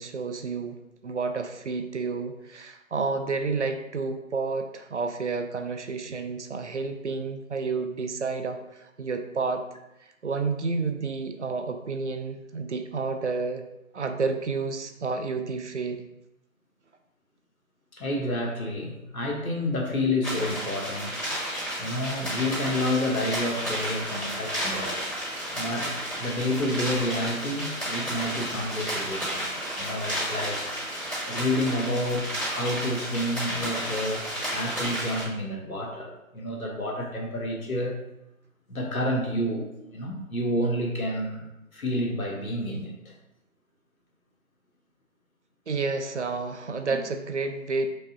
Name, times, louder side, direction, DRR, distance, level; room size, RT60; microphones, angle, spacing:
voice 1, 0.0-9.7 10.0-13.7 13.9-16.1 29.2-29.3 45.7-47.9, right 4 dB, 55° right, 7 dB, 0.5 m, -30 dB
voice 2, 17.9-21.1 21.8-25.0 25.5-25.9 26.2-29.5 29.8-30.7 31.3-37.9 38.7-41.5 41.7-43.1, left 1 dB, 80° left, 1 dB, 1.3 m, -29 dB
sound 1, 20.2-35.2, equal, ahead, 1.5 m, -32 dB
5.2 x 3.6 x 2.8 m, 0.88 s
figure-of-eight pair, 160°, 42 cm